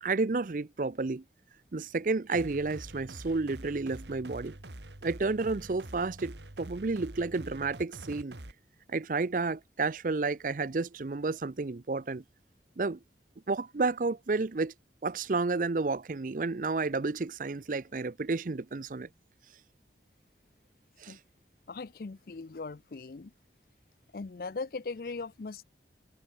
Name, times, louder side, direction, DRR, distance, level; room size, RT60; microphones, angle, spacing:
voice 1, 0.0-1.2 1.7-4.6 5.0-8.4 8.9-12.2 12.8-13.0 13.5-14.7 15.0-19.1 21.0-21.2, right 3 dB, 45° right, 0.5 m, -31 dB
sound 1, 2.3-8.5, right 1 dB, 80° right, 2.6 m, -46 dB
voice 2, 21.7-23.3 24.1-25.6, left 4 dB, 55° left, 0.5 m, -39 dB
head